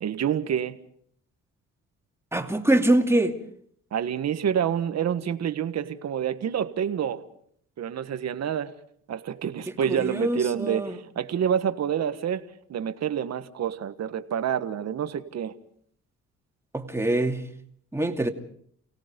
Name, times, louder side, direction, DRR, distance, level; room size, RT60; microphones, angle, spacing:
voice 1, 0.0-0.8 3.9-7.2 7.8-8.7 9.1-12.4 12.7-15.5, right 9 dB, 60° right, 1.5 m, -28 dB
voice 2, 2.3-3.3 9.9-11.0 16.7-17.5 17.9-18.3, right 1 dB, 10° right, 2.6 m, -24 dB
29.5 x 17.5 x 5.3 m
cardioid pair, 90°, 30 cm